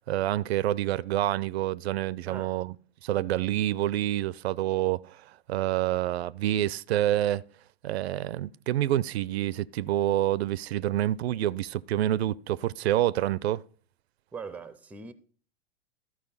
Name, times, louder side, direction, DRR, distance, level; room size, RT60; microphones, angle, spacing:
voice 1, 0.0-2.7 3.0-7.4 7.8-13.6, right 13 dB, 75° right, 0.5 m, -27 dB
voice 2, 2.3-2.6 14.3-15.1, right 5 dB, 5° right, 0.4 m, -41 dB
13.0 x 4.7 x 5.5 m
hypercardioid pair, 120°, 32 cm